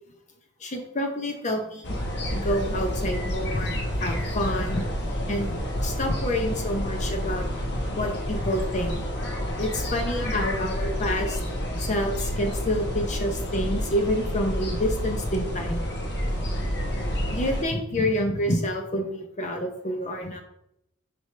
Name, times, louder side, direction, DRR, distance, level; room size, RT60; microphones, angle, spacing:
voice 1, 0.6-1.9 2.3-4.8 5.3-5.6 5.8-7.5 8.0-9.0 9.6-11.4 11.8-15.8 17.3-20.4, left 1 dB, 35° left, 3 dB, 0.7 m, -28 dB
sound 1, 1.8-17.6, equal, 50° left, 1.1 m, -29 dB
6.5 x 5.2 x 3.2 m, 0.79 s
head